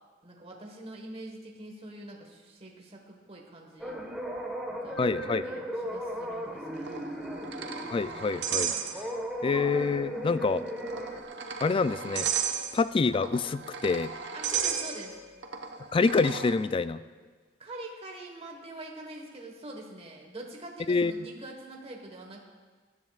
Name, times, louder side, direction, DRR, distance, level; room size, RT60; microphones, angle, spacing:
voice 1, 0.2-4.0 4.7-7.1 14.3-15.2 17.6-22.4, right 1 dB, 35° right, 0 dB, 1.4 m, -44 dB
sound 1, 3.8-11.2, equal, 5° right, 1.3 m, -37 dB
voice 2, 5.0-5.5 7.9-8.7 9.4-10.6 11.6-12.3 12.7-14.1 15.9-17.0 20.9-21.1, left 4 dB, 30° left, 14 dB, 0.3 m, -26 dB
sound 2, 6.8-9.4 9.7-9.8 10.7-16.5, right 7 dB, 65° right, 1.0 m, -34 dB
22.0 x 10.5 x 2.4 m, 1.4 s
head